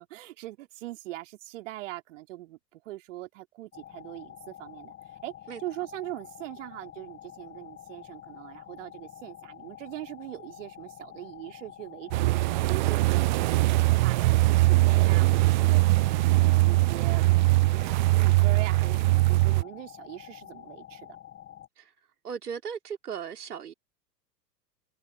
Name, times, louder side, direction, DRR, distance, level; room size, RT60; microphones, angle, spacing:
voice 1, 0.0-4.9 5.2-5.3 5.6-15.9 16.3-21.2, right 16 dB, 50° right, 3.3 m, -41 dB
sound 1, 3.7-21.7, left 12 dB, 25° left, 4.8 m, -48 dB
sound 2, 12.1-19.6, right 20 dB, 30° right, 0.6 m, -22 dB
voice 2, 22.2-23.7, right 7 dB, 65° right, 2.8 m, -37 dB
figure-of-eight pair, 100°, 49 cm